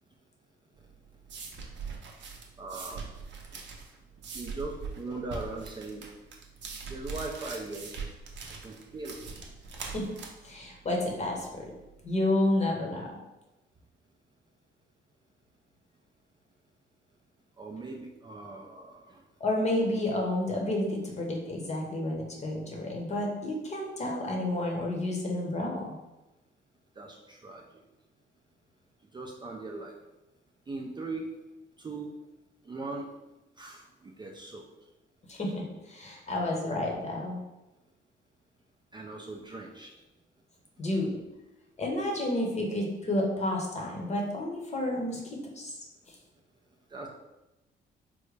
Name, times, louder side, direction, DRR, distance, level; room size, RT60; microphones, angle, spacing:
sound 1, 0.8-12.1, right 5 dB, 65° right, 0.6 m, -42 dB
voice 1, 2.6-3.0 4.3-6.1 6.9-7.9 8.6-9.2 17.6-19.2 27.0-27.6 29.1-29.9 30.7-31.3 31.8-32.1 32.6-33.1 33.6-34.6 38.9-39.9 46.9-47.1, right 3 dB, 20° right, -1 dB, 0.4 m, -39 dB
voice 2, 10.4-11.6 12.0-13.2 19.4-25.8 35.3-37.4 40.8-41.2 41.8-45.8, left 1 dB, 35° left, 0 dB, 0.8 m, -30 dB
3.6 x 2.1 x 3.2 m, 1.0 s
cardioid pair, 90°, 20 cm